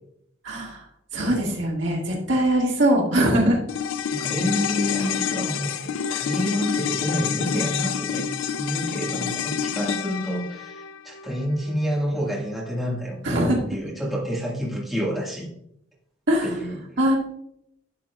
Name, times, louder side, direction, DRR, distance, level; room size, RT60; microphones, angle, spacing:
voice 1, 0.4-0.8 1.1-3.6 13.2-13.6 16.3-16.5 17.0-17.2, right 1 dB, 70° right, -1 dB, 1.9 m, -21 dB
sound 1, 3.7-12.2 12.4-12.5, left 8 dB, 80° left, 0.4 m, -28 dB
voice 2, 4.1-8.3 8.5-13.3 13.7-15.5 16.4-16.8, equal, ahead, -5 dB, 1.6 m, -28 dB
11.0 x 5.8 x 2.3 m, 0.74 s
head